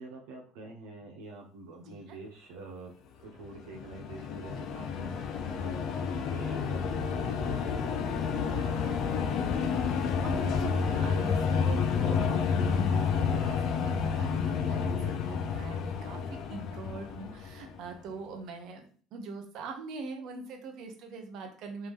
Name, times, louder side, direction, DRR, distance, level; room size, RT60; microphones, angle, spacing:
voice 1, 0.0-2.9 3.2-5.7 6.3-9.2, right 3 dB, 90° right, 0 dB, 0.7 m, -46 dB
voice 2, 1.7-2.2 9.8-21.9, right 3 dB, 60° right, 4 dB, 0.9 m, -42 dB
sound 1, 3.4-17.9, left 6 dB, 55° left, 0.5 m, -30 dB
3.4 x 3.0 x 3.5 m, 0.42 s
supercardioid pair, 115°, 0 cm